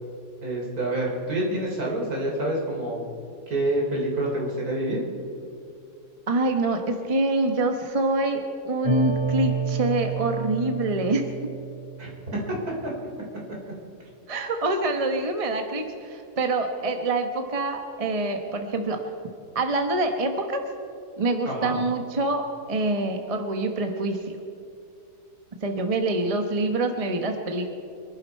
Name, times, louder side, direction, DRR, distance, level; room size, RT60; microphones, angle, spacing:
voice 1, 0.4-3.0 3.5-5.0 12.0-12.6 21.5-21.7, right 1 dB, 65° right, -2 dB, 3.8 m, -27 dB
voice 2, 6.3-11.3 14.3-19.0 19.5-20.6 21.2-24.3 25.6-27.7, right 2 dB, 25° right, 5 dB, 1.0 m, -26 dB
sound 1, 8.8-12.3, right 4 dB, 20° left, 5.3 m, -29 dB
25.0 x 11.5 x 4.6 m, 2.6 s
omnidirectional pair, 1.7 m